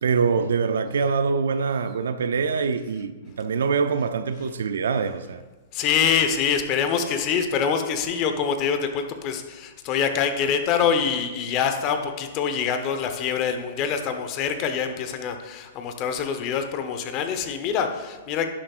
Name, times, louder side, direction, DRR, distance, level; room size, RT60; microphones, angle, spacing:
voice 1, 0.0-5.4, right 5 dB, 85° right, 0.4 m, -24 dB
voice 2, 5.7-18.5, left 7 dB, 35° left, 0.9 m, -25 dB
11.0 x 7.2 x 2.5 m
hypercardioid pair, 135°, 0 cm